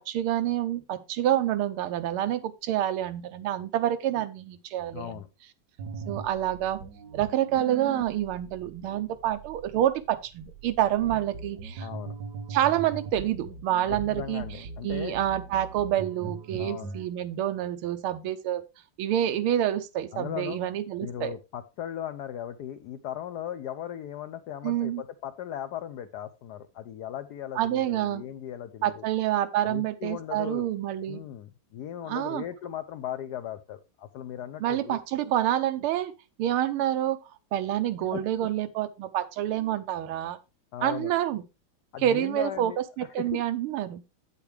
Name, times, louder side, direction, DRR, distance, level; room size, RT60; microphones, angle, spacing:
voice 1, 0.0-5.2 6.1-6.8 7.1-11.9 12.5-18.6 19.0-21.3 24.6-25.0 27.6-28.2 28.8-31.2 32.1-32.4 34.6-36.1 36.4-37.2 37.5-40.4 40.8-41.4 42.0-44.0, right 12 dB, 80° right, 10 dB, 1.6 m, -28 dB
voice 2, 4.9-5.3 11.8-12.2 13.9-15.1 16.6-16.9 20.1-20.6 21.0-29.0 29.6-30.7 31.1-35.0 38.1-38.5 40.7-41.1 41.9-42.8 43.2-43.4, left 10 dB, 80° left, 11 dB, 0.9 m, -37 dB
sound 1, 5.8-17.1, right 4 dB, 60° right, 1.5 m, -41 dB
8.4 x 8.4 x 3.3 m, 0.27 s
omnidirectional pair, 2.4 m